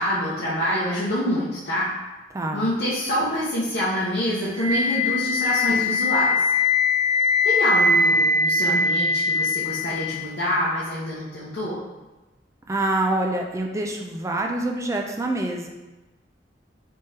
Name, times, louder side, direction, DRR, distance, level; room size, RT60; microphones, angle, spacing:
voice 1, 0.0-1.9 2.5-6.4 7.4-11.8, equal, 60° left, -9 dB, 0.8 m, -26 dB
voice 2, 2.3-2.7 12.7-15.7, right 2 dB, 15° right, 2 dB, 0.3 m, -26 dB
Wind instrument woodwind instrument, 4.5-10.5, left 3 dB, 85° right, 0.8 m, -21 dB
3.5 x 3.3 x 2.7 m, 1.1 s
head